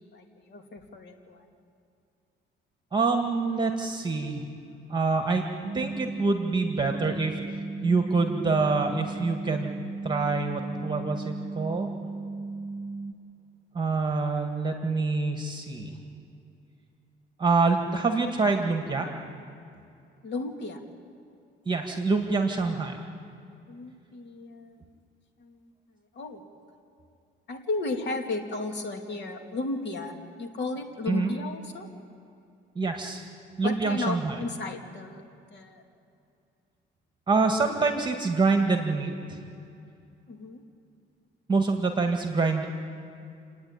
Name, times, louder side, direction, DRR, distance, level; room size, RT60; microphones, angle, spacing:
voice 1, 0.1-1.4 20.2-20.8 23.7-24.9 25.4-25.6 26.1-26.4 27.5-30.1 30.4-31.9 33.6-35.2 35.5-35.8 40.3-40.6, left 3 dB, 60° left, 3 dB, 2.5 m, -34 dB
voice 2, 2.9-4.4 4.9-5.4 5.7-9.7 10.0-11.9 13.7-15.9 17.4-19.1 21.7-23.0 31.1-31.3 32.7-33.2 33.6-34.4 37.3-39.4 41.5-42.6, right 4 dB, 25° right, 3 dB, 2.0 m, -26 dB
sound 1, 5.6-13.1, right 3 dB, 45° right, 0.7 m, -36 dB
29.0 x 9.7 x 9.7 m, 2.5 s
cardioid pair, 90°, 20 cm